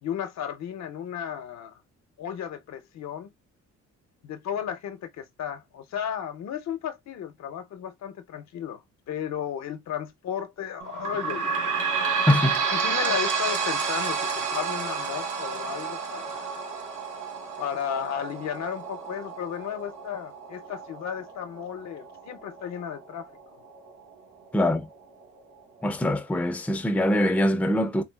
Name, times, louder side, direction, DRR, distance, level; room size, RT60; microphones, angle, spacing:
voice 1, 0.0-1.7 2.2-3.3 4.2-8.8 9.1-11.8 12.7-16.5 17.6-23.3, left 9 dB, 65° left, 0.6 m, -34 dB
sound 1, 10.8-24.0 24.5-24.6 24.9-25.0 25.8-25.9, right 5 dB, 90° right, 1.0 m, -30 dB
voice 2, 12.3-12.6 24.5-24.9 25.8-28.0, left 1 dB, 5° left, 0.4 m, -23 dB
3.7 x 2.3 x 2.2 m
cardioid pair, 90°, 30 cm